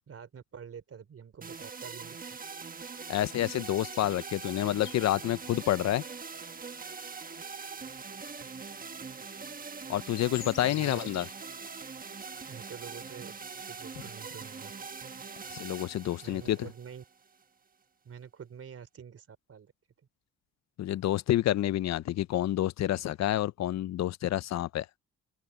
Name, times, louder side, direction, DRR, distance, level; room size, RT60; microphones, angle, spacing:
voice 1, 0.0-2.3 10.6-11.1 12.5-14.7 16.2-17.0 18.0-19.7, right 7 dB, 50° right, 4.1 m, -47 dB
sound 1, 1.4-17.4, right 5 dB, 30° right, 1.3 m, -43 dB
voice 2, 3.1-6.0 9.9-11.3 15.5-16.7 20.8-24.9, left 13 dB, 60° left, 0.6 m, -29 dB
sound 2, 3.8-5.7 6.3-6.4 6.9-7.1 8.0-8.1 9.5-9.6 9.9-11.3, left 14 dB, 85° left, 4.2 m, -47 dB
open air
cardioid pair, 90°, 30 cm